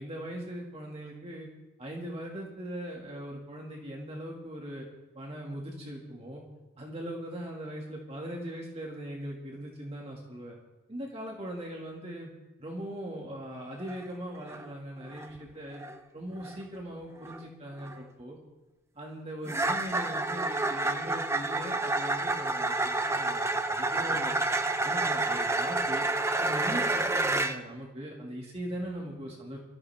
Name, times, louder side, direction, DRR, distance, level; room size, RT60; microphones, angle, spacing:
voice 1, 0.0-1.5 1.8-4.9 5.1-6.4 6.8-10.6 10.9-12.3 12.6-15.8 16.1-18.4 18.9-24.3 24.8-26.1 26.4-29.6, right 1 dB, 30° right, -2 dB, 2.2 m, -40 dB
sound 1, 13.8-14.0 14.3-14.7 15.1-15.4 15.7-16.0 16.4-16.6 17.2-17.4 17.8-18.0 19.5-27.6, right 2 dB, 15° right, 0.7 m, -29 dB
23.5 x 14.0 x 3.6 m, 1.1 s
head